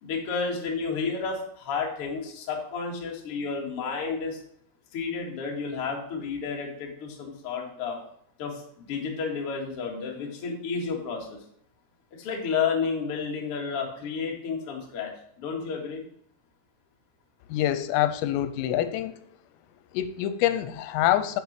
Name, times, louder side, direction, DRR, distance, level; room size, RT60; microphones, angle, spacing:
voice 1, 0.0-4.4 4.9-8.0 8.4-11.4 12.1-15.1 15.4-16.0, left 5 dB, 65° left, 0 dB, 1.4 m, -31 dB
voice 2, 17.5-19.2 19.9-21.4, left 12 dB, 85° left, 10 dB, 3.2 m, -25 dB
7.5 x 5.8 x 7.4 m, 0.67 s
omnidirectional pair, 5.9 m